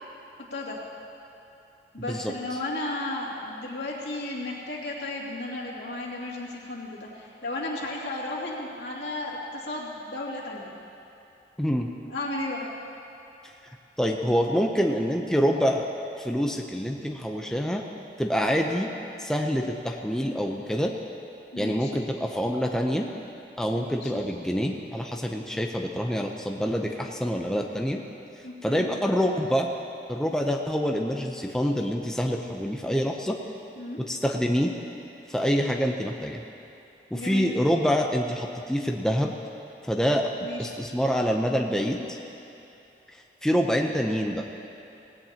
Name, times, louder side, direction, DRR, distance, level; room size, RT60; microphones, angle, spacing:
voice 1, 0.5-0.8 1.9-10.7 12.1-12.7 21.5-22.0 23.7-24.2 28.4-28.9 33.8-34.0 37.1-37.5 40.4-40.7, left 2 dB, 85° left, -4 dB, 2.4 m, -34 dB
voice 2, 11.6-11.9 14.0-15.9 16.2-17.8 18.2-18.9 19.2-20.9 21.5-23.1 23.6-28.0 28.6-29.7 30.1-33.4 34.0-34.7 35.3-36.4 37.1-39.3 39.8-40.3 40.6-42.0 43.4-44.5, equal, 5° left, 1 dB, 0.6 m, -26 dB
18.5 x 16.5 x 2.9 m, 2.8 s
head